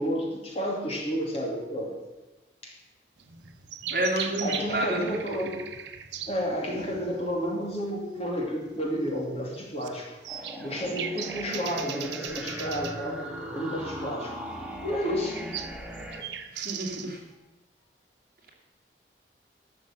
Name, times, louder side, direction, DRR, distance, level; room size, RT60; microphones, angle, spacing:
voice 1, 0.0-1.9 2.6-2.7 4.2-5.6 6.3-13.2 13.5-14.4 14.8-15.4, equal, 35° left, -2 dB, 2.6 m, -31 dB
sound 1, 3.2-17.3, right 8 dB, 80° right, 0.9 m, -39 dB
voice 2, 3.9-5.1 16.5-17.2, right 1 dB, 50° right, -1 dB, 2.5 m, -29 dB
sound 2, 10.3-16.2, equal, 5° right, 1.5 m, -38 dB
12.0 x 6.4 x 7.5 m, 1.1 s
head